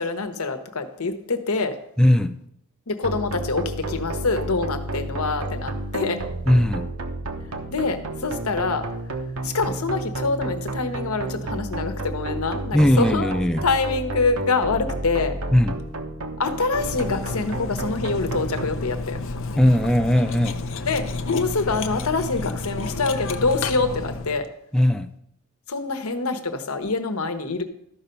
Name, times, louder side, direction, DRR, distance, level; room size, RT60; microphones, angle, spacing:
voice 1, 0.0-1.8 2.9-6.2 7.7-8.9 9.4-13.3 13.6-15.4 16.4-19.2 20.9-24.5 25.7-27.6, left 3 dB, 90° left, 8 dB, 1.1 m, -25 dB
voice 2, 2.0-2.4 6.4-6.9 12.7-13.7 15.5-15.9 19.6-20.7 24.7-25.1, left 1 dB, 5° left, 7 dB, 0.5 m, -19 dB
sound 1, 3.0-18.6, right 2 dB, 90° right, 1.1 m, -31 dB
Cutlery silverware, 16.7-24.5, left 3 dB, 65° left, 0.7 m, -31 dB
13.0 x 5.7 x 5.3 m, 0.73 s
head